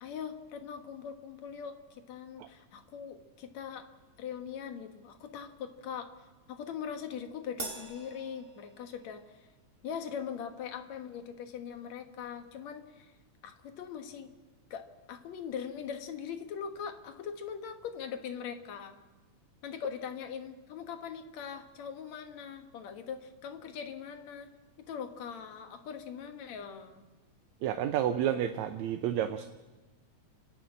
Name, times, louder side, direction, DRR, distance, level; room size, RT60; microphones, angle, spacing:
voice 1, 0.0-3.9 4.2-6.1 6.5-9.5 9.8-13.1 13.4-14.3 14.7-19.0 19.6-24.5 24.9-27.0, left 7 dB, 70° left, 7 dB, 2.5 m, -41 dB
Crash cymbal, 7.6-9.3, right 3 dB, 25° right, 1.7 m, -43 dB
voice 2, 27.6-29.5, right 10 dB, 75° right, 8 dB, 2.0 m, -30 dB
29.5 x 10.5 x 8.7 m, 1.2 s
omnidirectional pair, 3.4 m